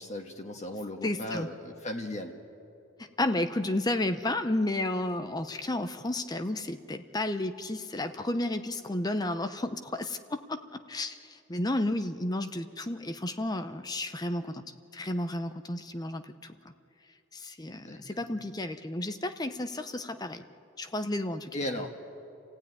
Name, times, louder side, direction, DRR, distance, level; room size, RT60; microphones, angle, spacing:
voice 1, 0.0-2.3 17.7-18.3 21.5-21.9, left 1 dB, 35° left, 2 dB, 1.4 m, -36 dB
voice 2, 1.0-1.5 3.0-14.6 14.9-16.5 17.3-20.4 20.8-21.5, left 1 dB, 20° left, 9 dB, 0.7 m, -32 dB
29.0 x 15.5 x 9.5 m, 2.8 s
head